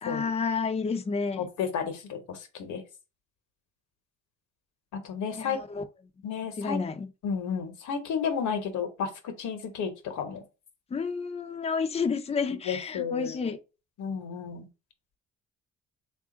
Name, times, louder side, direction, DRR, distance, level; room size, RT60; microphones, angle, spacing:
voice 1, 0.0-1.5 5.4-5.8 6.6-7.1 10.9-13.6, left 5 dB, 20° left, 0.5 m, -30 dB
voice 2, 1.4-2.8 4.9-5.6 6.2-6.8 7.2-10.4 12.6-13.5 14.0-14.7, left 6 dB, 75° left, 1.0 m, -32 dB
3.5 x 2.5 x 3.6 m
cardioid pair, 90°, 30 cm